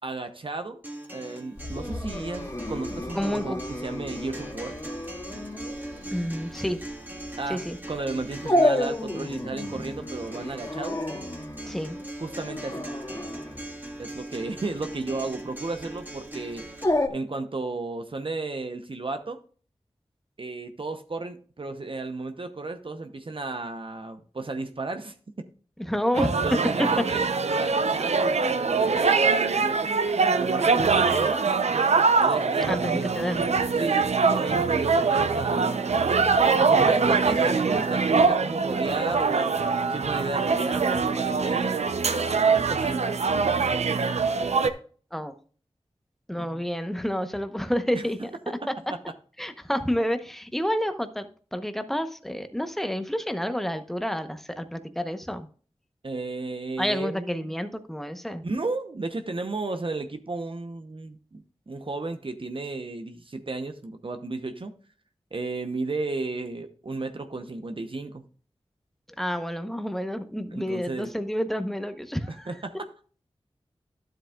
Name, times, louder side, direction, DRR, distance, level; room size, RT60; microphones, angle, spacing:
voice 1, 0.0-0.8 1.1-4.8 7.4-11.0 12.2-12.9 14.0-16.6 17.1-19.4 20.4-25.5 26.4-29.9 30.3-31.5 32.2-35.9 36.6-39.6 39.9-41.9 42.5-43.0 46.4-46.6 47.9-48.0 56.0-57.5 58.4-64.7 65.3-68.2 70.5-71.1 72.5-72.9, right 3 dB, 55° right, 7 dB, 0.9 m, -33 dB
Acoustic guitar, 0.8-16.8, right 1 dB, 15° right, 1.7 m, -40 dB
Dog, 1.6-17.1, left 1 dB, 30° left, 1.9 m, -31 dB
voice 2, 3.1-3.6 6.1-6.8 7.5-7.8 11.7-12.0 25.8-26.5 26.8-26.9 32.7-33.4 45.1-45.3 46.3-48.3 49.4-55.5 56.8-58.5 69.2-72.5, equal, 5° left, 9 dB, 1.0 m, -29 dB
sound 1, 26.1-44.7, right 4 dB, 90° right, 0.7 m, -23 dB
12.0 x 7.8 x 2.4 m, 0.42 s
wide cardioid pair, 55°, 11 cm